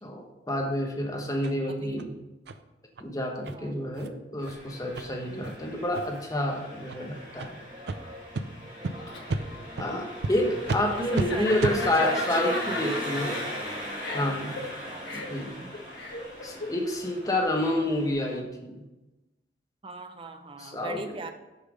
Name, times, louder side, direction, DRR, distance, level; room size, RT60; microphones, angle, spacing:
voice 1, 0.0-2.1 3.0-7.6 9.1-9.2 9.8-13.4 14.1-14.5 15.1-15.7 16.4-18.8 20.6-21.0, left 1 dB, 20° left, 1 dB, 1.1 m, -29 dB
sound 1, 1.4-1.5 2.0-2.1 2.5-2.6 2.9-3.0 3.4-3.5 3.9-4.1 4.4-4.5 4.9-5.0 5.4-5.6 5.9-6.3 6.8-7.0 7.4-7.5 7.9-8.0 8.3-8.4 8.8-8.9 9.3-9.4 9.8-9.9 10.2-10.3 10.7-10.8 11.1-11.3 11.6-11.8, right 3 dB, 70° right, 0.5 m, -31 dB
voice 2, 1.7-2.0 3.5-3.9 10.9-13.1 14.9-15.3 19.8-21.3, right 2 dB, 30° right, 6 dB, 0.7 m, -38 dB
Engine, 4.4-18.4, equal, 50° right, 3.0 m, -39 dB
Laughter, 8.7-18.1, left 2 dB, 80° left, 1.3 m, -37 dB
6.7 x 5.7 x 5.1 m, 1.1 s
head